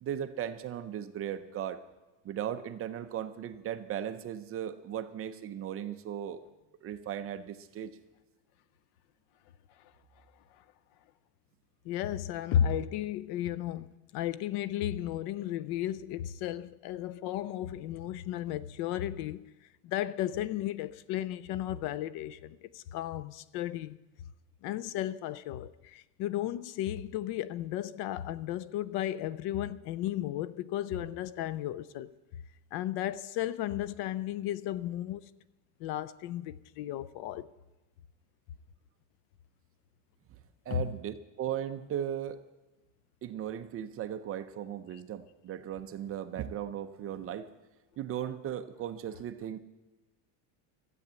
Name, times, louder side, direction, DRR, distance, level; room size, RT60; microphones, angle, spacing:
voice 1, 0.0-1.8 2.2-6.4 6.8-7.9 40.3-40.4 40.7-42.4 43.2-47.5 48.0-49.6, right 10 dB, 30° right, 0.6 m, -37 dB
voice 2, 11.8-19.5 19.8-24.0 24.6-32.1 32.7-35.3 35.8-37.5 40.7-40.9, left 11 dB, 60° left, 0.6 m, -34 dB
13.5 x 8.5 x 8.1 m
cardioid pair, 165°, 45 cm